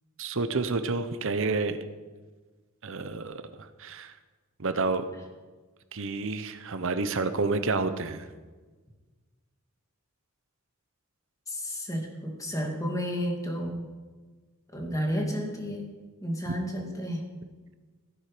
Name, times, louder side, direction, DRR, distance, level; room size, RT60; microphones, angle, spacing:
voice 1, 0.2-1.8 2.8-4.1 4.6-5.1 5.9-8.3, right 3 dB, 65° right, 10 dB, 0.9 m, -29 dB
voice 2, 11.5-13.9 14.7-15.9 16.2-17.2, equal, 15° left, 1 dB, 2.3 m, -31 dB
15.5 x 10.5 x 5.1 m, 1.3 s
head